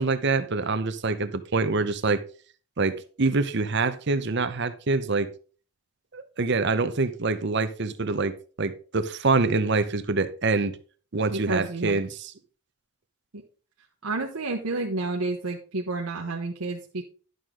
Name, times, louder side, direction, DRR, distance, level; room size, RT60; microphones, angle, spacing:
voice 1, 0.0-2.2 2.8-5.3 6.1-10.8 11.1-12.3, right 3 dB, 50° right, 0.7 m, -25 dB
voice 2, 11.3-12.0 13.3-13.4 14.0-17.0, right 2 dB, 85° right, 1.0 m, -30 dB
11.0 x 6.4 x 3.7 m
head